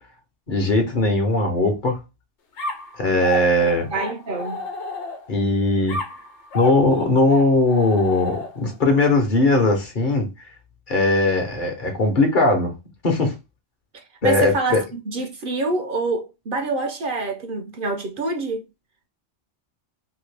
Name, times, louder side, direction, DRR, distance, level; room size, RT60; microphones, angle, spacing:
voice 1, 0.5-2.0 3.0-3.9 5.3-6.0 6.5-10.3 10.9-12.7 13.0-13.3 14.2-14.8, left 2 dB, 50° left, 0.9 m, -19 dB
sound 1, 2.6-5.4 5.9-8.8, left 3 dB, 90° left, 1.1 m, -32 dB
voice 2, 3.9-4.6 14.2-18.6, right 3 dB, 60° right, 0.7 m, -26 dB
2.9 x 2.7 x 3.2 m
omnidirectional pair, 1.1 m